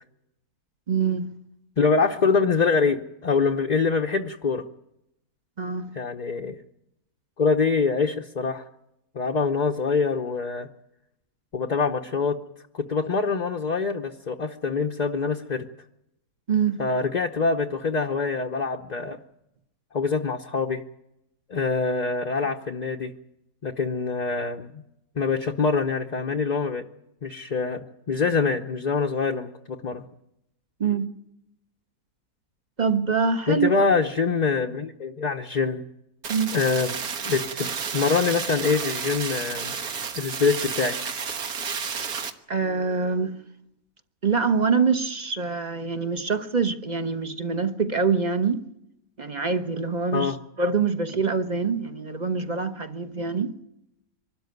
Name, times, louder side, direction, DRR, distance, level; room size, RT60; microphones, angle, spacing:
voice 1, 0.9-1.3 5.6-5.9 16.5-16.8 30.8-31.1 32.8-33.8 36.3-36.5 42.5-43.4 44.2-48.6 49.2-53.5, right 5 dB, 30° right, 1.1 m, -25 dB
voice 2, 1.8-4.6 5.9-6.6 7.4-8.6 9.1-10.7 11.5-12.4 12.7-15.6 16.8-19.2 19.9-20.8 21.5-23.1 23.6-24.7 25.2-26.8 27.2-30.0 33.5-35.8 36.5-36.9 37.3-39.7 40.1-41.1 50.1-50.4, left 4 dB, 35° left, 0.8 m, -25 dB
sound 1, 36.2-42.3, right 6 dB, 75° right, 1.8 m, -31 dB
24.0 x 13.0 x 9.4 m
omnidirectional pair, 1.6 m